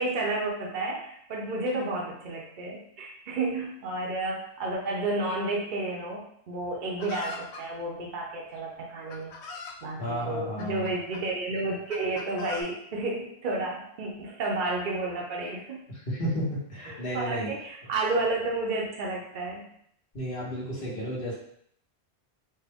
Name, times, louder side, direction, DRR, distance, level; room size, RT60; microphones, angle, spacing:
voice 1, 0.0-9.3 9.8-15.8 16.8-19.7, right 2 dB, 50° right, -2 dB, 0.8 m, -31 dB
Chicken rooster, 7.0-7.6 8.6-8.7 9.1-9.8 10.6-11.2 11.9-12.6, left 4 dB, 80° left, 0.9 m, -40 dB
voice 2, 10.0-10.9 16.1-17.5 20.1-21.4, equal, 55° left, -5 dB, 1.3 m, -32 dB
4.4 x 2.1 x 3.5 m, 0.68 s
omnidirectional pair, 1.1 m